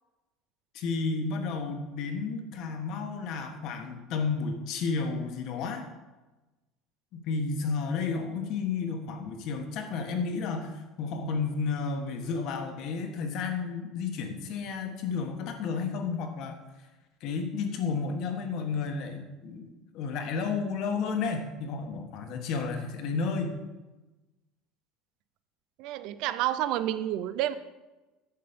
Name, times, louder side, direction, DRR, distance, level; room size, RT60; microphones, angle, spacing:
voice 1, 0.7-5.8 7.1-16.6 17.2-19.7 19.9-23.6, left 4 dB, 45° left, 5 dB, 1.4 m, -32 dB
voice 2, 25.8-27.5, right 13 dB, 55° right, 14 dB, 0.5 m, -29 dB
11.5 x 7.8 x 5.2 m, 1.1 s
cardioid pair, 180°, 0 cm